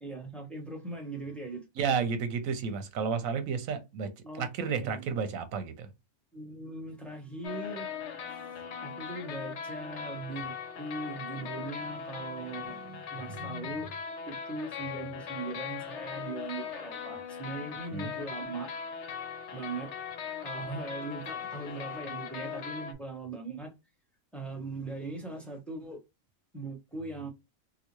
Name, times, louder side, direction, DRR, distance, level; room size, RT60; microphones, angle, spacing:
voice 1, 0.0-2.1 4.2-5.1 6.3-7.9 8.8-14.0 14.2-18.7 19.5-19.9 20.4-23.7 24.3-26.0 26.5-27.3, right 3 dB, ahead, 0.9 m, -40 dB
voice 2, 1.8-4.1 4.3-5.9 17.9-18.1, right 6 dB, 85° right, 1.1 m, -31 dB
sound 1, 7.4-22.9, left 7 dB, 65° left, 0.9 m, -39 dB
3.9 x 2.3 x 3.0 m
omnidirectional pair, 1.4 m